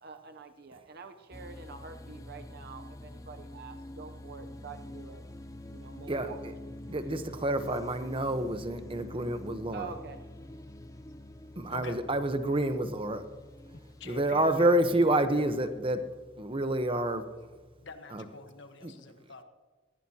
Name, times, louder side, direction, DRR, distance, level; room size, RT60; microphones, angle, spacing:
voice 1, 0.0-5.2 5.7-6.4 9.7-10.2, right 5 dB, 55° right, 7 dB, 0.7 m, -46 dB
sound 1, 1.3-18.0, left 1 dB, 15° left, 0.6 m, -47 dB
voice 2, 6.1-6.5 6.9-9.9 11.6-13.3 14.0-16.0 16.4-17.2 18.1-18.3 18.8-18.9, right 1 dB, 30° right, 9 dB, 0.9 m, -28 dB
voice 3, 13.7-14.8 17.8-19.4, left 3 dB, 65° left, 7 dB, 1.3 m, -45 dB
19.0 x 15.5 x 2.9 m, 1.4 s
head